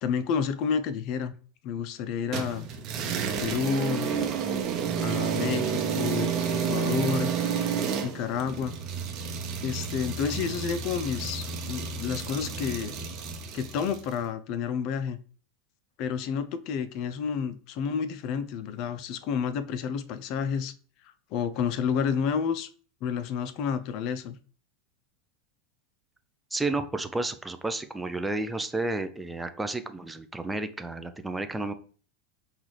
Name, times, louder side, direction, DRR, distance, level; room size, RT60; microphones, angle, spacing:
voice 1, 0.0-1.3 1.6-2.7 3.4-4.1 5.0-6.4 6.7-7.3 8.0-8.8 9.6-13.0 13.5-15.2 16.0-20.7 21.3-22.7 23.0-24.4, left 7 dB, 55° left, 12 dB, 0.5 m, -30 dB
sound 1, 2.3-14.1, right 6 dB, 45° right, 0.7 m, -30 dB
voice 2, 26.5-31.7, right 2 dB, 10° right, 9 dB, 0.4 m, -31 dB
5.5 x 2.4 x 3.2 m, 0.41 s
hypercardioid pair, 110°, 0 cm